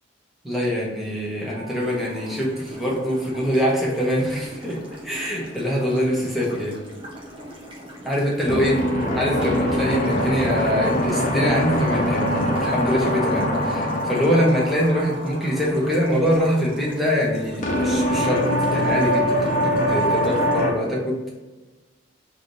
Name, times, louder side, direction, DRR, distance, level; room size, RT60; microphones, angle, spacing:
voice 1, 0.5-4.8 5.0-6.8 8.0-8.8 9.1-18.4 18.7-21.3, equal, ahead, -5 dB, 1.0 m, -23 dB
sound 1, 1.5-2.2 8.5-16.5 17.6-20.7, equal, 40° left, 0.7 m, -23 dB
sound 2, 1.8-20.7, equal, 30° right, 0.9 m, -40 dB
3.5 x 2.7 x 4.6 m, 1.2 s
head